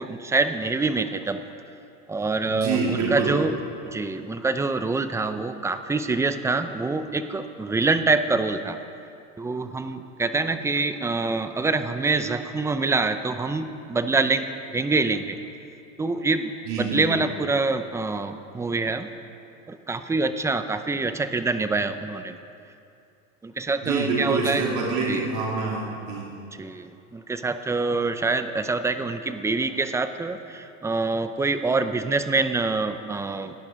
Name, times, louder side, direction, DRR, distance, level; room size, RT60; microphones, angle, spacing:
voice 1, 0.0-1.4 2.1-3.5 3.9-8.8 9.4-14.5 14.7-15.4 16.0-16.5 16.8-19.1 19.7-22.4 23.4-24.6 25.1-25.3 26.6-33.5, right 3 dB, 5° right, 10 dB, 0.5 m, -25 dB
voice 2, 2.5-3.4 16.6-17.2 23.8-26.3, right 4 dB, 65° right, -2 dB, 2.5 m, -26 dB
17.0 x 10.5 x 5.2 m, 2.6 s
supercardioid pair, 120°, 40 cm